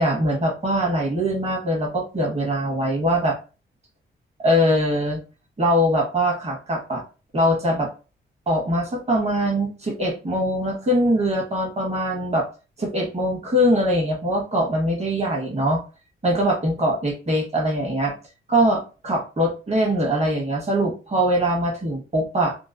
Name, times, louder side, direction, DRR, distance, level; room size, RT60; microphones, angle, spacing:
voice 1, 0.0-3.4 4.4-5.2 5.6-7.0 7.3-7.9 8.5-12.5 12.8-15.8 16.2-18.1 18.5-22.6, equal, 30° right, 0 dB, 1.2 m, -22 dB
3.0 x 2.1 x 2.4 m, 0.33 s
cardioid pair, 75°, 21 cm